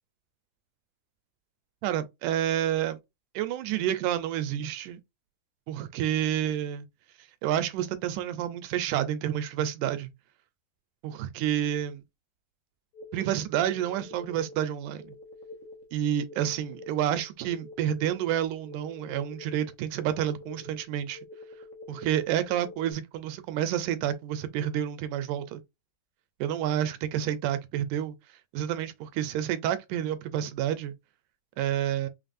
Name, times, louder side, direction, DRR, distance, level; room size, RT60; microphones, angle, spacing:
voice 1, 1.8-3.0 3.4-5.0 5.7-6.9 7.4-10.1 11.0-12.0 13.1-15.1 15.9-21.2 21.9-25.6 26.4-28.2 28.5-30.9 31.6-32.1, right 11 dB, 80° right, 2.0 m, -29 dB
sound 1, 12.9-22.9, left 2 dB, 75° left, 2.5 m, -47 dB
5.8 x 2.4 x 2.5 m
omnidirectional pair, 3.8 m